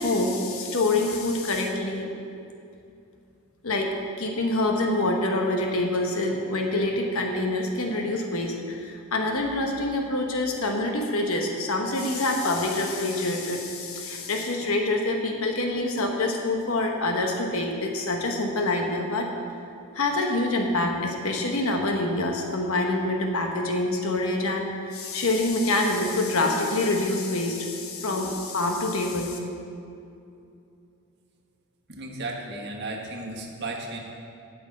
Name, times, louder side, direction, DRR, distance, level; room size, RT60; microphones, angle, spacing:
voice 1, 0.0-2.1 3.6-19.3 19.9-29.4, left 2 dB, 70° left, 2 dB, 1.1 m, -26 dB
voice 2, 31.9-34.0, right 2 dB, 50° right, 0 dB, 1.4 m, -34 dB
9.2 x 6.2 x 8.5 m, 2.5 s
head